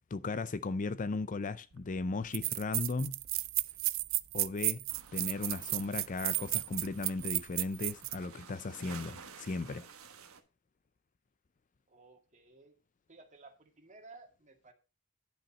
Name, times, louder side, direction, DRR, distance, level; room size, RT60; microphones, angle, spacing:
voice 1, 0.1-3.2 4.3-4.8 5.1-9.9, left 3 dB, 35° left, 0.4 m, -36 dB
sound 1, 1.8-1.9 2.3-8.2, right 19 dB, 65° right, 0.4 m, -33 dB
sound 2, 4.9-10.4, right 6 dB, 80° right, 1.3 m, -53 dB
voice 2, 11.9-12.7 13.1-14.7, right 3 dB, 35° right, 2.0 m, -56 dB
10.5 x 5.8 x 5.3 m
head